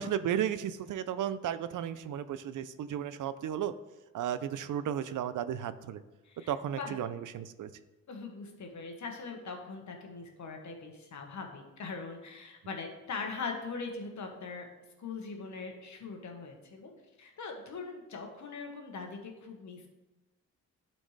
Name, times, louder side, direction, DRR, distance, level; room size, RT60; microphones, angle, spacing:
voice 1, 0.0-3.8 4.1-6.0 6.5-7.7, right 9 dB, 65° right, 14 dB, 0.5 m, -34 dB
voice 2, 6.2-7.0 8.1-14.7 15.0-16.9 17.2-19.9, left 4 dB, 55° left, 3 dB, 1.3 m, -41 dB
11.5 x 4.3 x 3.2 m, 1.1 s
cardioid pair, 110°, 34 cm